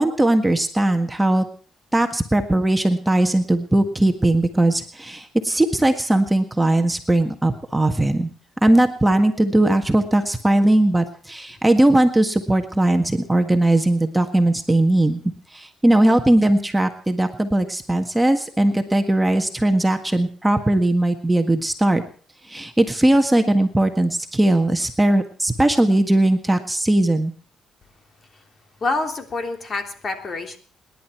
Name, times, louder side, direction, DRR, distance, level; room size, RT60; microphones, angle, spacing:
voice 1, 0.0-1.5 1.9-8.3 8.6-15.2 15.5-22.0 22.5-27.3, right 1 dB, 10° right, 5 dB, 1.7 m, -19 dB
voice 2, 28.8-30.6, left 3 dB, 45° left, 5 dB, 3.4 m, -27 dB
27.5 x 11.0 x 4.6 m, 0.43 s
cardioid pair, 90°, 0 cm